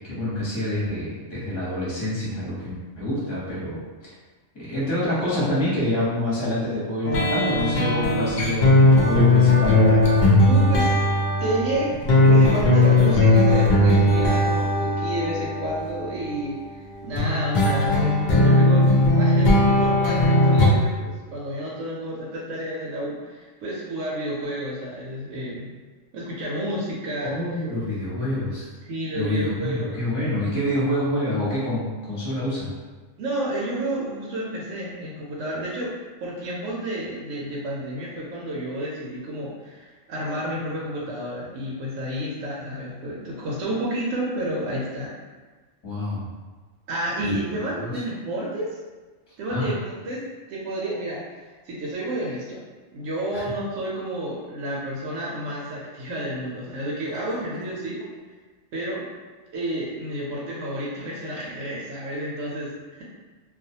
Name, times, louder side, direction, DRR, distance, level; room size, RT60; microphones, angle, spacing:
voice 1, 0.0-3.8 4.7-10.0 27.2-28.7 29.1-32.7 45.8-46.3 47.2-47.9 49.5-49.7 53.3-53.4, left 1 dB, 25° left, -8 dB, 0.8 m, -27 dB
sound 1, 7.0-16.5 17.1-20.7, left 2 dB, 75° left, 0.4 m, -18 dB
voice 2, 10.4-11.0 11.4-11.9 12.3-25.7 26.1-27.6 28.8-30.0 33.2-45.1 46.9-48.7 49.4-50.2 50.5-51.2 51.6-52.6 52.9-58.0 58.7-59.0 59.5-63.0, right 1 dB, 75° right, -5 dB, 0.9 m, -30 dB
2.3 x 2.3 x 2.7 m, 1.3 s
omnidirectional pair, 1.4 m